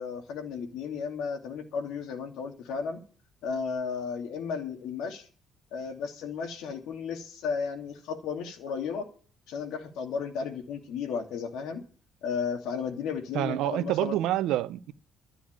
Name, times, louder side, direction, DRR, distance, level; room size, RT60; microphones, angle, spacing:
voice 1, 0.0-3.0 3.4-5.3 5.7-9.1 9.5-11.8 12.2-14.2, left 6 dB, 85° left, 2.7 m, -34 dB
voice 2, 13.3-14.9, right 14 dB, 90° right, 0.8 m, -27 dB
13.5 x 6.9 x 9.0 m
cardioid pair, 150°, 0 cm